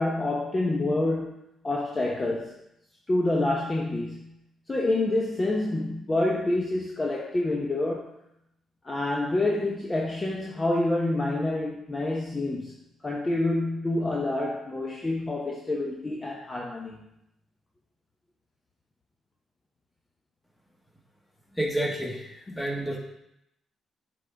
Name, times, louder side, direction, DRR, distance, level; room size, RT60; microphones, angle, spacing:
voice 1, 0.0-1.3 1.6-2.5 3.1-4.3 4.7-8.1 8.8-12.8 13.0-16.9, left 2 dB, 25° left, -2 dB, 0.7 m, -27 dB
voice 2, 21.6-23.0, right 1 dB, 5° left, -2 dB, 1.4 m, -30 dB
7.3 x 3.8 x 3.4 m, 0.82 s
cardioid pair, 90°, 0 cm